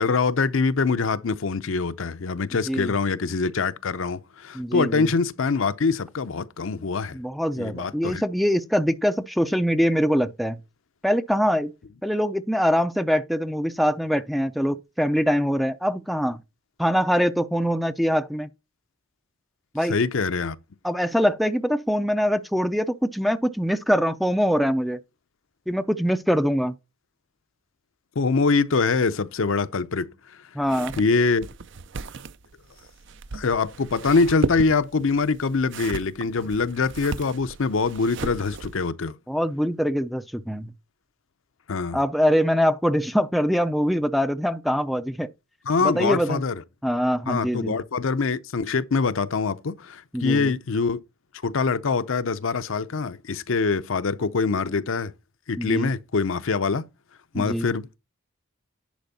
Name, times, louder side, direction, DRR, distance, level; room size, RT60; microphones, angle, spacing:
voice 1, 0.0-7.2 7.6-8.2 19.9-20.6 28.2-30.1 31.0-31.5 33.3-39.1 41.7-42.0 45.7-46.6 47.3-51.0 51.4-55.1 55.5-56.8 57.3-58.0, left 4 dB, 65° left, 0.6 m, -24 dB
voice 2, 4.5-5.1 7.1-10.6 11.0-11.7 12.0-16.4 16.8-18.5 19.7-20.0 20.8-25.0 25.7-26.7 30.6-30.9 39.3-40.7 41.9-45.3 45.8-46.4 46.8-47.8 50.1-50.5 55.6-55.9 57.3-57.7, equal, ahead, 0.4 m, -23 dB
sound 1, 30.6-38.9, right 4 dB, 55° right, 0.5 m, -35 dB
10.5 x 5.1 x 4.1 m
head